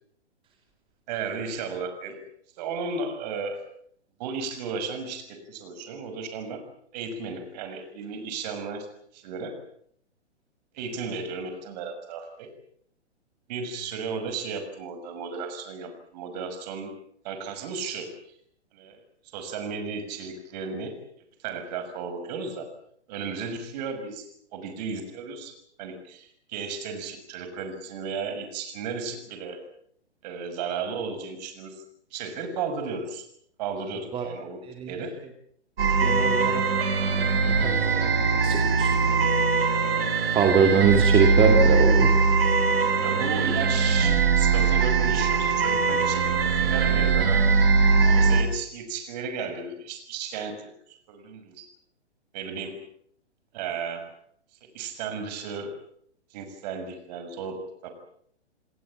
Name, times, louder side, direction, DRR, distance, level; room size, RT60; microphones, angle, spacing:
voice 1, 1.1-2.2 2.6-3.6 4.2-6.6 6.9-8.9 9.1-9.6 10.7-12.5 13.5-17.0 17.2-18.1 18.7-19.0 19.2-21.0 21.4-22.7 23.1-24.3 24.5-25.5 25.8-29.6 30.2-31.8 32.1-33.2 33.6-35.2 43.0-46.3 46.6-47.6 48.0-51.7 52.3-52.8 53.5-54.1 54.6-55.7 56.3-57.9, right 5 dB, 35° right, 8 dB, 6.2 m, -34 dB
sound 1, 35.8-48.4, right 4 dB, 55° right, 5.4 m, -21 dB
voice 2, 36.0-36.6 37.4-39.2 40.3-42.2, right 6 dB, 15° right, 3 dB, 2.5 m, -24 dB
29.0 x 19.0 x 7.6 m, 0.66 s
figure-of-eight pair, 125°, 35 cm